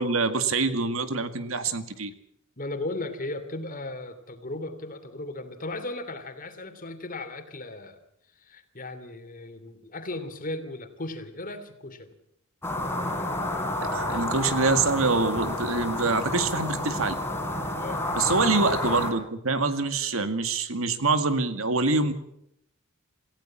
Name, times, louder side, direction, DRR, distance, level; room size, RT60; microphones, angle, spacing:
voice 1, 0.0-2.1 13.8-17.1 18.2-22.1, right 3 dB, 70° right, 10 dB, 2.1 m, -25 dB
voice 2, 2.6-8.0 8.4-12.1 17.8-18.1, left 2 dB, 40° left, 8 dB, 2.9 m, -36 dB
sound 1, 12.6-19.1, left 1 dB, 10° left, 4.0 m, -30 dB
27.5 x 16.0 x 7.4 m, 0.74 s
head